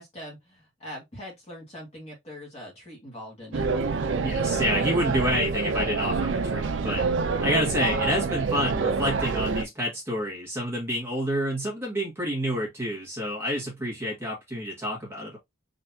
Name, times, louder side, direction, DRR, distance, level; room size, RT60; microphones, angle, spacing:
voice 1, 0.0-3.7, equal, 35° left, 1.9 m, -42 dB
sound 1, 3.5-9.6, right 4 dB, 80° right, 0.5 m, -27 dB
voice 2, 4.2-7.0 7.4-15.4, equal, 15° right, 1.8 m, -28 dB
3.9 x 3.3 x 2.8 m
head